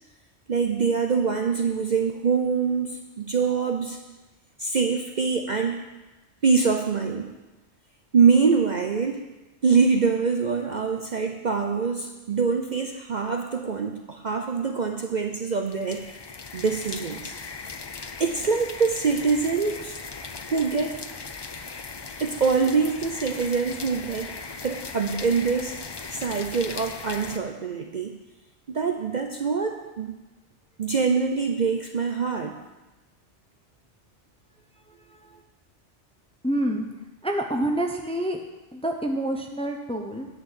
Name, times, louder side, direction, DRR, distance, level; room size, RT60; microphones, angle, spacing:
voice 1, 0.5-4.0 4.6-5.8 6.4-7.3 8.1-9.2 9.6-16.0 16.5-17.3 18.2-20.0 20.5-21.0 22.2-24.3 24.6-28.1 28.7-30.1 30.8-32.5, right 5 dB, 45° right, 4 dB, 0.7 m, -24 dB
sound 1, 15.7-27.4, left 4 dB, 45° left, 0.3 m, -38 dB
voice 2, 36.4-36.9 37.2-38.4 38.7-40.3, right 1 dB, 5° left, 3 dB, 0.7 m, -27 dB
9.7 x 5.9 x 7.5 m, 1.1 s
omnidirectional pair, 1.2 m